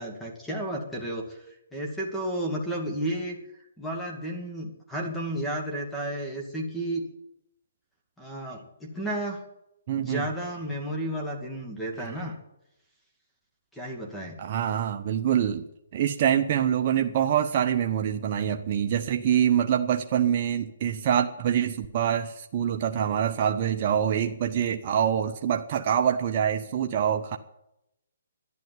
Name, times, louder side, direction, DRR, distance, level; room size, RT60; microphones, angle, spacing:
voice 1, 0.0-1.4 1.7-3.4 3.8-7.0 8.2-9.4 10.0-12.4 13.7-14.4, right 1 dB, 5° left, 0 dB, 2.4 m, -32 dB
voice 2, 9.9-10.2 14.4-15.7 15.9-27.4, right 9 dB, 40° right, 5 dB, 0.8 m, -25 dB
12.0 x 10.5 x 9.4 m, 0.84 s
hypercardioid pair, 155°, 0 cm